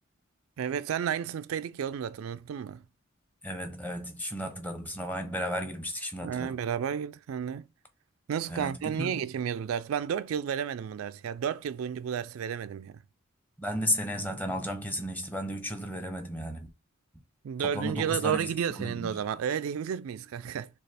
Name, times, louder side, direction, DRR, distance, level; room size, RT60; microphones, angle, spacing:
voice 1, 0.6-2.8 6.2-7.6 8.3-13.0 17.4-20.7, right 8 dB, 75° right, 0.3 m, -32 dB
voice 2, 3.4-6.6 8.5-9.2 13.6-16.7 17.6-19.2, equal, 10° left, 0.7 m, -34 dB
6.4 x 2.4 x 3.4 m
head